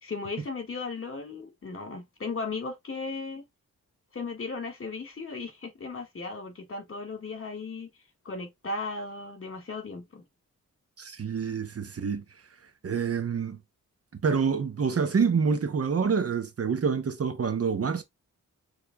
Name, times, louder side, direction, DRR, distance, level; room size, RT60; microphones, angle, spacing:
voice 1, 0.0-3.4 4.1-7.9 8.3-10.2, left 3 dB, 40° left, 1.8 m, -36 dB
voice 2, 11.0-12.2 12.8-13.6 14.2-18.0, right 6 dB, 45° right, 0.8 m, -27 dB
6.8 x 3.2 x 2.3 m
wide cardioid pair, 110°, 32 cm